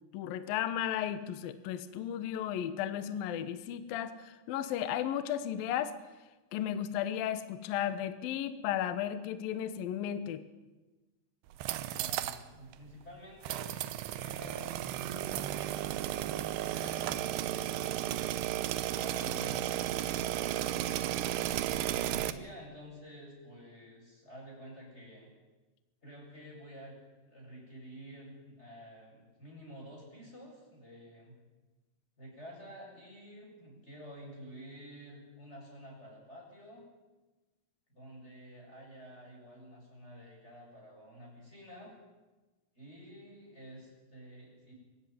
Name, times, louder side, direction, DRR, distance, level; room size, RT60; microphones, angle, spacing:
voice 1, 0.1-5.9 6.5-10.4, left 10 dB, 80° left, 11 dB, 2.1 m, -34 dB
sound 1, 11.5-12.4 12.7-12.8 13.4-22.3, right 13 dB, 80° right, 2.4 m, -34 dB
voice 2, 11.8-13.8 14.1-15.7 16.4-17.3 18.9-21.5 21.9-25.3 26.0-27.0 27.3-31.4 32.2-36.8 37.9-41.9 42.7-44.7, equal, 10° left, -2 dB, 7.5 m, -50 dB
25.0 x 15.0 x 9.4 m, 1.2 s
omnidirectional pair, 5.8 m